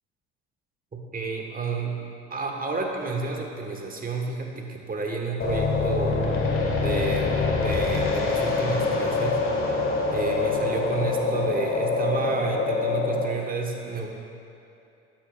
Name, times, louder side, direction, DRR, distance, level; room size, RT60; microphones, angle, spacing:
voice 1, 0.9-2.0 2.3-6.2 6.8-9.4 10.1-14.1, right 3 dB, 25° right, 1 dB, 1.5 m, -30 dB
sound 1, 5.4-13.3, left 3 dB, 35° left, 1.6 m, -25 dB
13.0 x 9.1 x 2.5 m, 2.7 s
hypercardioid pair, 60°, 35 cm